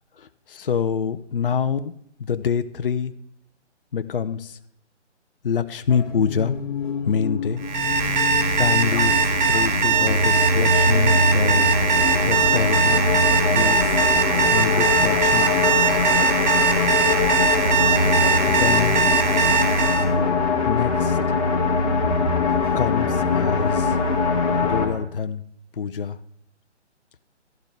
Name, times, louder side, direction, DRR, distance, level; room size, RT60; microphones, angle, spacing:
voice 1, 0.2-1.9 2.2-3.1 3.9-4.6 5.4-6.6 7.0-7.6 8.6-11.7 12.2-13.0 13.5-14.0 14.5-15.6 18.5-19.0 20.7-21.2 22.7-24.0 24.6-25.4 25.7-26.2, left 7 dB, 50° left, 12 dB, 0.5 m, -26 dB
sound 1, 5.9-24.9, left 3 dB, 30° left, 1.8 m, -22 dB
Alarm, 7.6-20.1, right 5 dB, 40° right, 1.0 m, -21 dB
12.0 x 11.0 x 3.3 m, 0.72 s
figure-of-eight pair, 145°, 36 cm